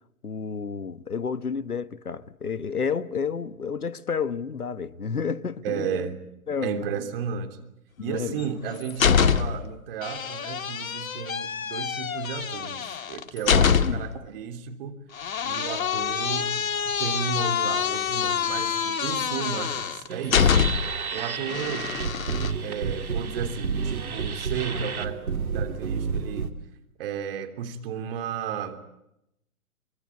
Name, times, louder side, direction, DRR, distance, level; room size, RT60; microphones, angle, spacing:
voice 1, 0.2-6.1 6.5-6.8 8.0-8.4 13.8-14.1, left 6 dB, 85° left, 1.5 m, -30 dB
voice 2, 5.6-6.2 6.6-7.6 8.0-15.0 15.4-16.6 16.8-20.6 21.1-21.9 22.5-25.2 25.5-26.5 27.0-28.8, right 7 dB, 40° right, 3.4 m, -33 dB
sound 1, 8.4-9.7 10.0-14.2 15.2-21.0 21.5-22.5, left 7 dB, 65° left, 1.7 m, -25 dB
sound 2, 20.1-26.5, right 5 dB, 75° right, 2.7 m, -30 dB
24.5 x 24.0 x 8.5 m
figure-of-eight pair, 130°, 44 cm